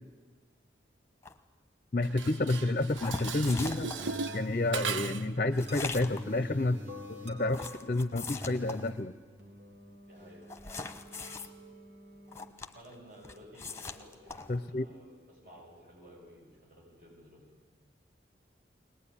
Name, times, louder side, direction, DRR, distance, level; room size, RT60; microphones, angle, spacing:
sound 1, 1.2-1.4 3.0-4.2 5.6-6.4 7.5-9.0 10.5-11.5 12.3-13.0 13.2-14.6, left 4 dB, 15° left, 1.1 m, -41 dB
voice 1, 1.9-3.9 4.3-6.8 7.1-9.1 14.5-14.9, left 2 dB, 45° left, 12 dB, 0.7 m, -30 dB
Dishes pots and pans, 2.0-5.4, right 5 dB, 90° right, 0.7 m, -38 dB
sound 2, 3.9-12.5, left 1 dB, 75° right, 3.4 m, -47 dB
voice 2, 10.1-10.4 12.7-17.4, equal, 50° right, -2 dB, 7.0 m, -54 dB
23.0 x 19.5 x 9.9 m, 1.4 s
head